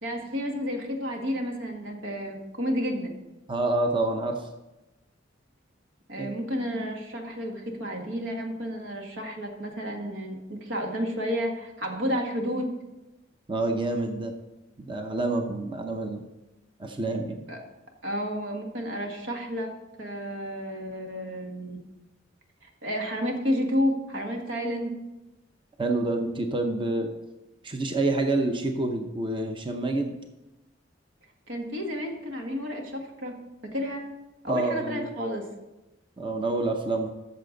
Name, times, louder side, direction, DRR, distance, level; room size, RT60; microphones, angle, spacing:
voice 1, 0.0-3.1 6.1-12.7 17.5-17.6 18.0-19.7 20.0-21.8 22.6-24.9 31.5-33.3 33.7-34.0 34.4-35.5, equal, 80° right, 2 dB, 1.7 m, -31 dB
voice 2, 3.5-4.5 6.2-6.4 13.5-14.3 14.9-16.2 16.8-17.4 25.8-27.1 27.6-30.1 34.5-35.1 36.2-37.1, right 2 dB, 25° right, 4 dB, 0.7 m, -27 dB
13.5 x 6.8 x 3.9 m, 1.0 s
head